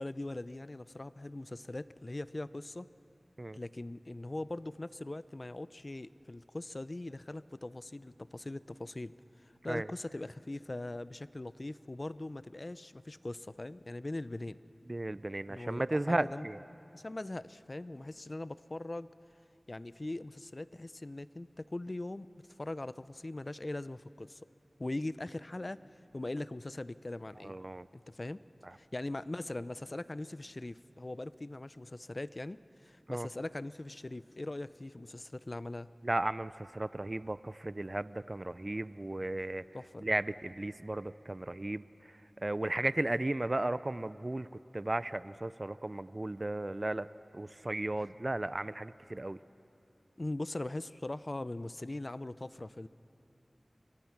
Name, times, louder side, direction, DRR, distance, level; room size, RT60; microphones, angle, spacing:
voice 1, 0.0-2.9 3.5-9.1 9.4-14.6 15.5-16.5 16.9-19.1 19.7-22.3 22.6-24.4 24.8-27.6 27.9-28.4 28.7-35.9 39.7-40.1 50.2-52.9, left 2 dB, 45° left, 16 dB, 0.5 m, -41 dB
voice 2, 14.9-16.6 27.4-27.9 33.1-33.3 36.0-39.6 40.0-41.9 42.4-44.5 44.7-47.1 47.3-49.4, right 2 dB, 40° right, 16 dB, 0.4 m, -35 dB
29.0 x 22.5 x 5.9 m, 2.9 s
wide cardioid pair, 45°, 0 cm